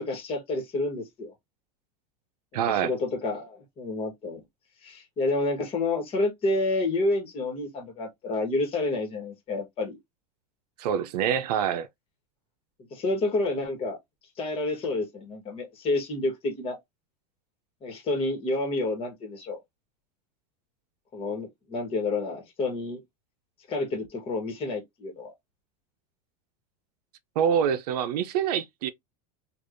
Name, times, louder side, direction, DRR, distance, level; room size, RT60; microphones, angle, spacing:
voice 1, 0.0-1.3 2.5-4.4 4.8-10.0 12.9-14.0 14.4-16.8 17.8-19.6 21.1-23.0 23.7-25.3, left 2 dB, 30° left, 1.3 m, -29 dB
voice 2, 2.5-2.9 10.8-11.9 27.4-28.9, right 8 dB, 80° right, 0.6 m, -26 dB
3.3 x 2.5 x 2.5 m
supercardioid pair, 145°, 20 cm